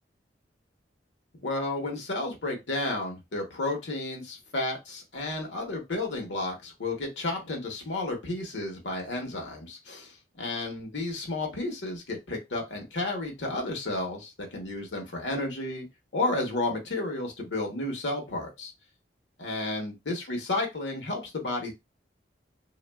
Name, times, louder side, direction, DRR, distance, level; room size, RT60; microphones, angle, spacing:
voice 1, 1.4-15.9 16.1-18.7 19.4-21.7, left 2 dB, 85° left, 2 dB, 1.0 m, -32 dB
3.0 x 2.4 x 2.2 m, 0.22 s
head